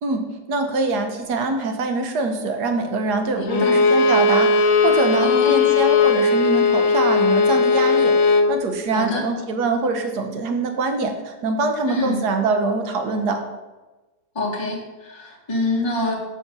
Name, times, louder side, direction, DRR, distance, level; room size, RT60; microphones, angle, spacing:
voice 1, 0.0-13.4, right 3 dB, 65° right, 6 dB, 1.6 m, -24 dB
voice 2, 3.3-3.8 5.2-5.6 8.9-9.3 11.9-12.2 14.3-16.2, left 2 dB, 15° left, -4 dB, 1.6 m, -26 dB
Bowed string instrument, 3.5-8.5, left 4 dB, 70° left, 0.5 m, -17 dB
7.6 x 5.3 x 6.8 m, 1.2 s
omnidirectional pair, 1.9 m